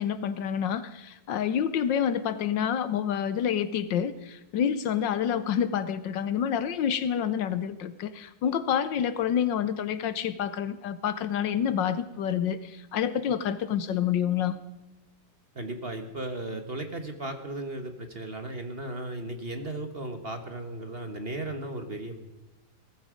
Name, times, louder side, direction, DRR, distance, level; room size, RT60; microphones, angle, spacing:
voice 1, 0.0-14.6, left 8 dB, 70° left, 13 dB, 1.4 m, -28 dB
voice 2, 15.5-22.2, right 2 dB, 35° right, 6 dB, 1.4 m, -36 dB
18.5 x 14.5 x 5.1 m, 1.1 s
omnidirectional pair, 2.1 m